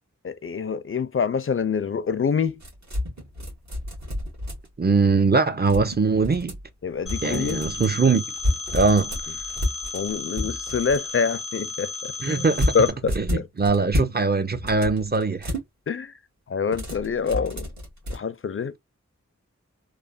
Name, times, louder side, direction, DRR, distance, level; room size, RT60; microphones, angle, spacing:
voice 1, 0.2-2.6 6.8-7.6 9.9-12.5 12.7-13.4 15.9-16.1 16.5-17.7 18.1-18.8, left 6 dB, 45° left, 0.4 m, -26 dB
sound 1, 2.6-4.9 5.6-6.7 7.1-7.9 8.4-11.0 12.5-14.2 14.5-15.7 16.7-18.2, left 1 dB, 70° right, 1.4 m, -30 dB
voice 2, 4.8-6.6 7.2-8.2 8.7-9.1 12.2-12.8 13.2-15.5, right 4 dB, 35° right, 0.6 m, -21 dB
Telephone, 7.1-12.9, left 3 dB, 50° right, 1.5 m, -34 dB
3.2 x 2.1 x 2.3 m
wide cardioid pair, 55°, 29 cm